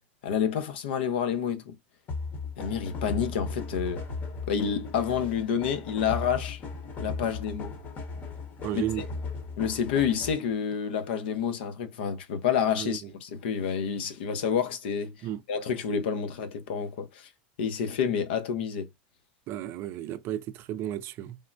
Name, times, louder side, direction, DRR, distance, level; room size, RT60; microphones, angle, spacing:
voice 1, 0.2-1.8 2.6-4.0 4.5-6.6 7.0-7.8 8.7-9.0 9.6-15.1 15.5-17.3 17.6-18.9, left 7 dB, 80° left, 0.8 m, -29 dB
sound 1, 2.1-10.5, left 4 dB, 30° left, 0.9 m, -37 dB
voice 2, 8.6-9.0 12.8-13.0 15.2-15.4 19.5-21.4, right 12 dB, 40° right, 0.4 m, -33 dB
3.5 x 2.1 x 2.5 m
supercardioid pair, 135°, 6 cm